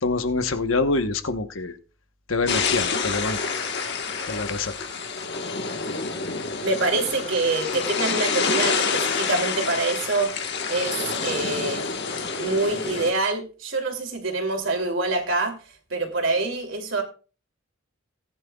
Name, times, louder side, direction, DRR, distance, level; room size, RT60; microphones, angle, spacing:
voice 1, 0.0-1.8 2.3-3.4 4.3-4.7, left 3 dB, 70° left, 9 dB, 1.1 m, -25 dB
sound 1, 2.5-13.1, left 5 dB, 55° left, 1.4 m, -27 dB
voice 2, 6.6-10.3 10.7-11.8 12.3-15.6 15.9-17.0, right 3 dB, 65° right, 3 dB, 2.8 m, -25 dB
18.5 x 10.5 x 2.3 m, 0.36 s
head